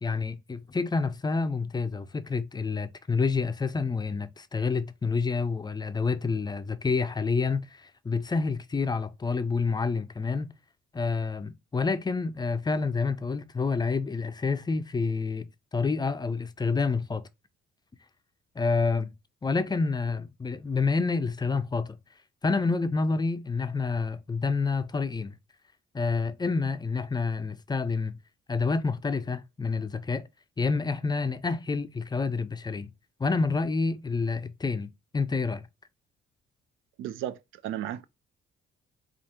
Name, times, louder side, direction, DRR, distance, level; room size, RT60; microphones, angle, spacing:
voice 1, 0.0-10.5 10.9-17.2 18.6-19.1 19.4-22.0 22.4-25.3 25.9-28.2 28.5-30.2 30.6-32.9 33.2-35.6, left 4 dB, 20° left, 0.4 m, -28 dB
voice 2, 37.0-38.1, right 11 dB, 85° right, 0.4 m, -34 dB
4.6 x 2.5 x 2.7 m
cardioid pair, 90°, 20 cm